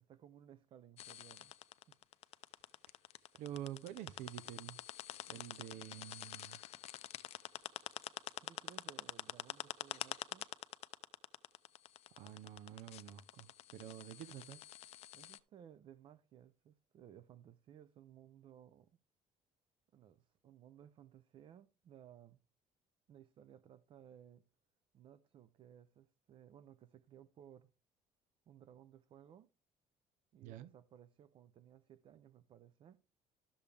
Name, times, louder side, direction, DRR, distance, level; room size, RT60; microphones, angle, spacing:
voice 1, 0.0-1.5 1.9-2.0 8.4-10.5 15.1-18.9 19.9-22.4 23.1-24.4 24.9-27.7 28.5-29.5 30.3-33.0, right 10 dB, 45° right, 0.6 m, -60 dB
sound 1, 1.0-15.4, left 14 dB, 55° left, 0.5 m, -47 dB
voice 2, 3.3-4.8 5.3-6.6 12.1-14.6 30.4-30.7, right 12 dB, 85° right, 0.6 m, -48 dB
12.5 x 7.0 x 3.4 m
cardioid pair, 160°, 13 cm